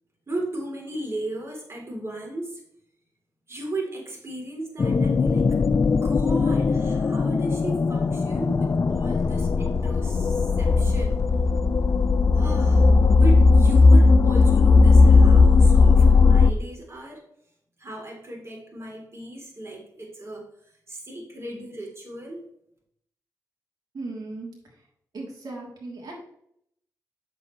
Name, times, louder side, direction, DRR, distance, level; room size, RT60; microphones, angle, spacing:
voice 1, 0.3-2.6 3.5-5.5 6.0-11.2 12.3-12.9 13.2-17.2 17.8-22.4, right 1 dB, 40° right, -1 dB, 3.4 m, -36 dB
sound 1, 4.8-16.5, left 4 dB, 45° left, 0.4 m, -17 dB
voice 2, 23.9-24.5 25.1-26.1, right 2 dB, 70° right, -2 dB, 3.2 m, -36 dB
8.1 x 7.1 x 3.2 m, 0.71 s
cardioid pair, 55°, 7 cm